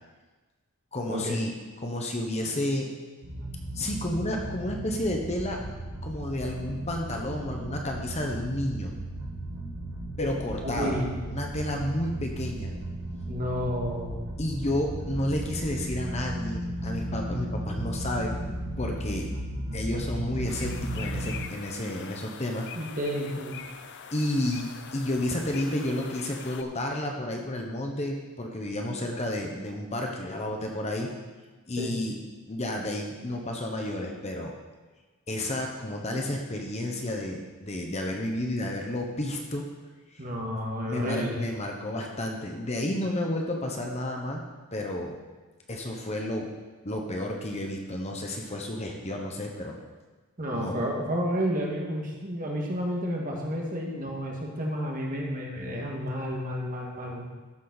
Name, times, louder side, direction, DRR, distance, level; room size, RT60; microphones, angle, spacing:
voice 1, 0.9-1.5 1.8-2.9 3.7-5.6 6.0-8.9 10.2-11.0 11.3-12.7 14.4-19.3 19.7-22.7 24.1-31.1 31.7-32.2 32.5-34.5 35.3-39.7 40.1-40.2 40.8-44.4 44.7-45.2 45.7-46.5 46.8-49.8 50.5-50.8, left 1 dB, 30° left, 1 dB, 1.1 m, -31 dB
sound 1, 3.2-21.4, right 1 dB, 75° right, 2.5 m, -35 dB
voice 2, 10.8-11.1 13.3-14.2 22.7-23.6 31.8-31.9 40.2-41.4 50.4-57.3, equal, 40° right, -1 dB, 1.8 m, -31 dB
sound 2, 20.5-26.6, left 7 dB, 50° left, 0.6 m, -43 dB
13.0 x 7.3 x 4.2 m, 1.3 s
head